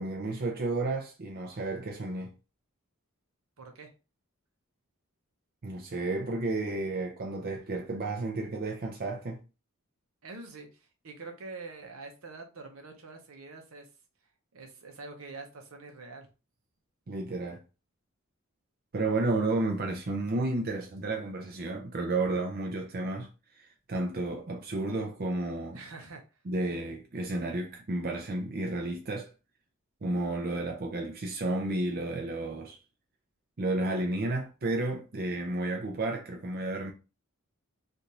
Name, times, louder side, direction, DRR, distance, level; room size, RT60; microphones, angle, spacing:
voice 1, 0.0-2.3 5.6-9.4 17.1-17.6 18.9-23.3 23.6-25.8 26.5-29.3 30.0-32.8 33.6-36.9, right 2 dB, 45° right, 0.6 m, -32 dB
voice 2, 3.6-3.9 10.2-13.9 14.5-16.3 25.7-26.2, right 3 dB, 75° right, 0.8 m, -45 dB
3.3 x 2.6 x 2.8 m
head